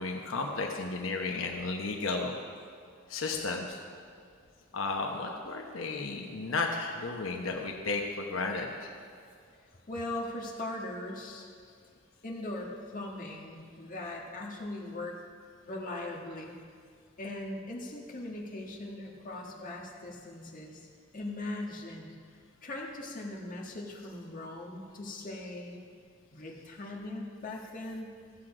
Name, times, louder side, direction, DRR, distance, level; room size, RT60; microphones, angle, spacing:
voice 1, 0.0-2.4 3.1-3.8 4.7-9.0, left 3 dB, 90° left, 1 dB, 0.9 m, -33 dB
voice 2, 9.9-11.5 12.2-15.2 15.6-16.6 17.2-20.9 21.1-22.1 22.6-25.8 26.3-28.1, left 2 dB, 45° left, -1 dB, 1.6 m, -40 dB
14.0 x 7.7 x 4.9 m, 2.1 s
head